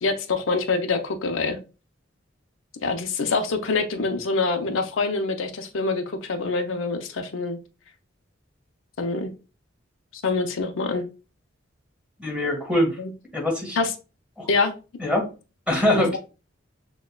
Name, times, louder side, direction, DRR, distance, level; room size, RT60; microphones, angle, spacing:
voice 1, 0.0-1.6 2.8-7.6 9.0-9.3 10.1-11.0 13.0-13.1 13.8-13.9 14.5-14.7 15.9-16.2, left 3 dB, 80° left, 6 dB, 0.6 m, -25 dB
voice 2, 12.2-13.0 13.3-13.8 14.4-14.5 15.0-15.3 15.7-16.2, left 1 dB, 5° right, 0 dB, 1.3 m, -23 dB
6.2 x 2.2 x 2.2 m, 0.31 s
head